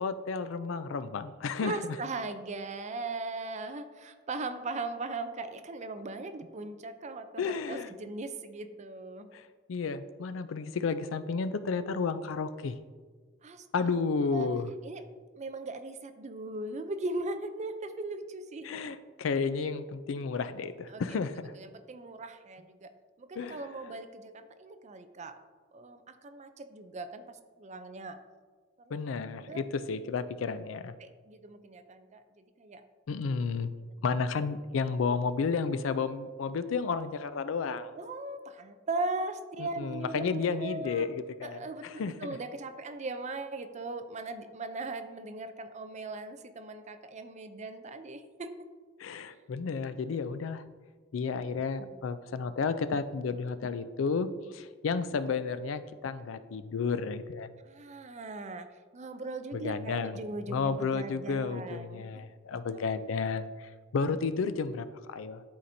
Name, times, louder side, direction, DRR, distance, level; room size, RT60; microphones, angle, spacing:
voice 1, 0.0-2.0 7.4-7.9 9.3-12.8 13.7-14.7 18.6-21.5 23.4-23.6 28.9-30.9 33.1-33.7 34.0-38.0 39.6-42.4 49.0-50.6 51.1-57.6 59.5-60.2 60.5-65.4, left 5 dB, 90° left, 13 dB, 0.4 m, -32 dB
voice 2, 1.6-9.3 13.4-13.9 14.3-14.5 14.8-15.0 15.4-18.8 20.9-21.2 21.5-22.9 23.2-25.4 25.7-28.2 28.8-29.0 29.5-29.6 31.0-32.8 38.0-41.1 41.4-48.5 51.8-51.9 57.6-58.7 58.9-62.2 62.7-62.8, right 2 dB, 35° right, 9 dB, 0.5 m, -39 dB
11.5 x 4.3 x 2.7 m, 1.5 s
head